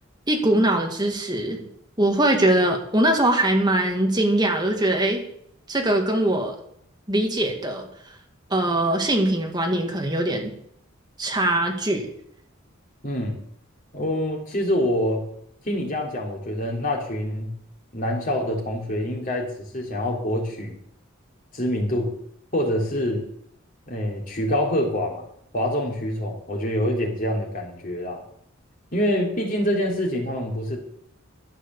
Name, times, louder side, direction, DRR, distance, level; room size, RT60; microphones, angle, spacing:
voice 1, 0.3-1.6 2.0-5.2 5.7-6.5 7.1-7.9 8.5-10.5 11.2-12.1, right 1 dB, 20° right, 2 dB, 2.0 m, -22 dB
voice 2, 13.0-13.4 13.9-15.2 15.7-17.5 17.9-20.8 21.5-22.1 22.5-23.2 23.9-25.3 25.5-28.2 28.9-30.8, equal, 40° left, -1 dB, 3.5 m, -25 dB
12.0 x 9.6 x 7.1 m, 0.69 s
head